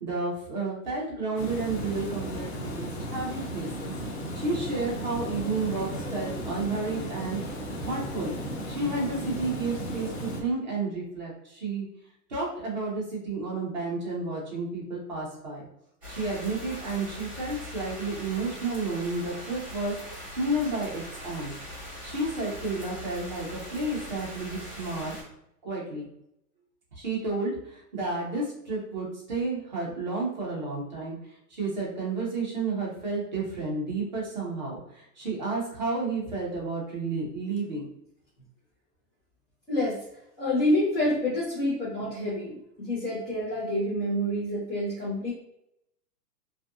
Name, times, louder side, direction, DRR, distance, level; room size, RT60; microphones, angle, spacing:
voice 1, 0.0-3.9 4.3-8.3 8.7-11.9 12.3-15.7 16.1-21.5 22.0-25.1 25.6-26.1 26.9-31.2 31.5-37.9, right 3 dB, 30° right, -4 dB, 0.5 m, -31 dB
Water, 1.4-10.4, equal, 45° left, 0.4 m, -35 dB
sound 1, 16.0-25.2, left 1 dB, 5° right, 1.0 m, -41 dB
voice 2, 39.7-40.0 40.4-45.3, left 1 dB, 25° left, -13 dB, 1.0 m, -28 dB
2.6 x 2.5 x 2.5 m, 0.78 s
supercardioid pair, 175°, 48 cm